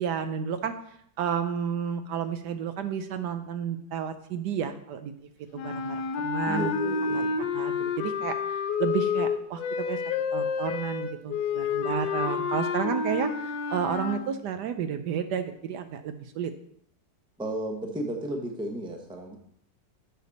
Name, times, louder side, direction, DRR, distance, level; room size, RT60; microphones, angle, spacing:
voice 1, 0.0-5.1 5.5-6.7 7.1-10.0 10.3-16.5, right 8 dB, 75° right, 8 dB, 1.1 m, -32 dB
sound 1, 5.5-14.2, left 6 dB, 75° left, 1.3 m, -29 dB
voice 2, 6.5-7.3 17.4-19.4, right 1 dB, 5° right, 2 dB, 0.7 m, -33 dB
8.1 x 6.7 x 4.1 m, 0.69 s
omnidirectional pair, 2.0 m